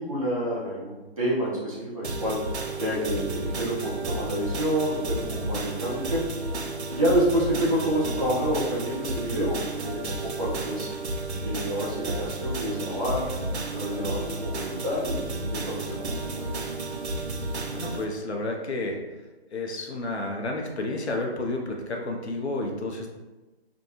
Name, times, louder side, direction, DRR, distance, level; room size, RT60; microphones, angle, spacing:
voice 1, 0.0-2.4 2.8-6.3 6.9-10.9 11.4-13.3 13.7-16.5, equal, 35° right, -8 dB, 0.8 m, -28 dB
sound 1, 2.0-18.0, right 2 dB, 75° right, 0.6 m, -32 dB
voice 2, 17.7-19.0 19.5-23.1, left 2 dB, 75° left, 1 dB, 0.6 m, -31 dB
2.6 x 2.1 x 2.9 m, 1.1 s
figure-of-eight pair, 175°, 33 cm